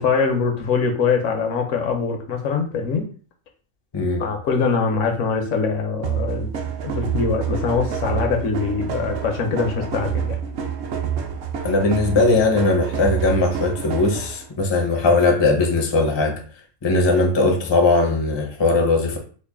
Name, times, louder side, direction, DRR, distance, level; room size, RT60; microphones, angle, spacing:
voice 1, 0.0-3.1 4.2-6.5 6.8-10.4, left 5 dB, 70° left, 1.0 m, -23 dB
voice 2, 3.9-4.2 11.6-16.4 16.8-19.2, left 2 dB, 35° left, 0.4 m, -19 dB
sound 1, 6.0-14.5, right 7 dB, 65° right, 0.8 m, -28 dB
3.1 x 2.4 x 3.5 m
omnidirectional pair, 1.4 m